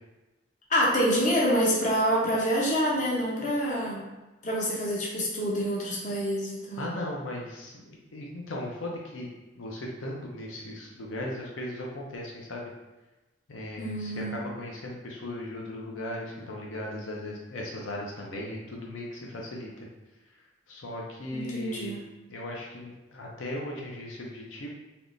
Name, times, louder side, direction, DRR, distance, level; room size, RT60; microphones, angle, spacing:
voice 1, 0.7-4.1 4.4-6.9 13.8-14.4 21.3-22.0, equal, 40° left, -4 dB, 0.7 m, -27 dB
voice 2, 6.8-9.3 9.5-12.7 13.5-19.9 20.7-22.0 22.3-24.7, left 1 dB, 80° left, -2 dB, 0.6 m, -37 dB
3.5 x 2.9 x 2.5 m, 1.1 s
head